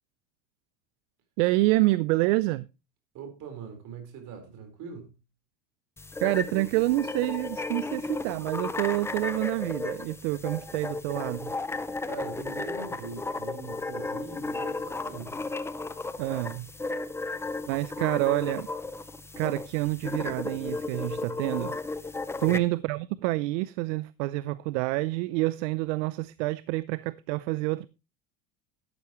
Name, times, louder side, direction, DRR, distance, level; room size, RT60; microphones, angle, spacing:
voice 1, 1.4-2.7 6.2-11.5 16.2-16.7 17.7-18.7 19.4-21.8 22.4-27.8, right 20 dB, 75° right, 0.7 m, -27 dB
voice 2, 3.1-5.1 12.0-15.4 22.4-22.7, right 6 dB, 50° right, 4.5 m, -42 dB
sound 1, 6.0-22.6, left 3 dB, 5° left, 0.6 m, -34 dB
12.0 x 12.0 x 3.1 m
supercardioid pair, 125°, 39 cm